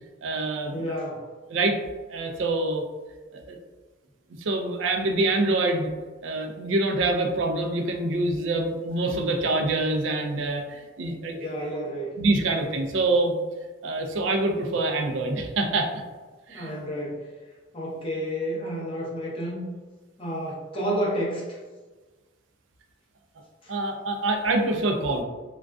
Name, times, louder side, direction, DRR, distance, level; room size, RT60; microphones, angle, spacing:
voice 1, 0.2-1.0 1.5-1.8 2.1-2.8 3.3-3.6 4.4-5.9 6.2-11.5 12.2-13.3 13.8-15.9 16.5-16.7 23.7-25.2, right 2 dB, 75° right, 3 dB, 0.4 m, -25 dB
voice 2, 0.7-1.3 11.3-12.1 16.5-17.3 17.7-19.6 20.2-21.6 23.6-23.7, equal, 30° left, -5 dB, 0.7 m, -30 dB
2.4 x 2.2 x 2.2 m, 1.3 s
head